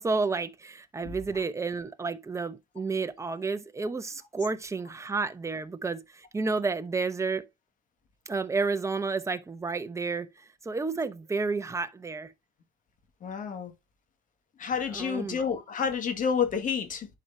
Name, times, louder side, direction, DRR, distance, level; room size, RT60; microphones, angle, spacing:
voice 1, 0.0-7.4 8.3-12.3 14.9-15.4, right 4 dB, 15° right, 0.9 m, -31 dB
voice 2, 13.2-13.7 14.6-17.1, left 6 dB, 50° left, 2.0 m, -29 dB
10.5 x 4.8 x 2.8 m
cardioid pair, 110°, 17 cm